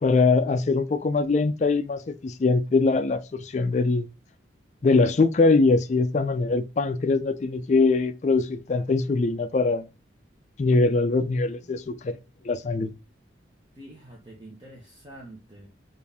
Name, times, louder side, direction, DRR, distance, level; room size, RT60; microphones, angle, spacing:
voice 1, 0.0-4.1 4.8-9.9 10.6-12.2 12.4-12.9, left 3 dB, 40° left, 0.3 m, -22 dB
voice 2, 13.7-15.7, right 1 dB, 25° right, 0.9 m, -46 dB
4.6 x 2.6 x 3.3 m
head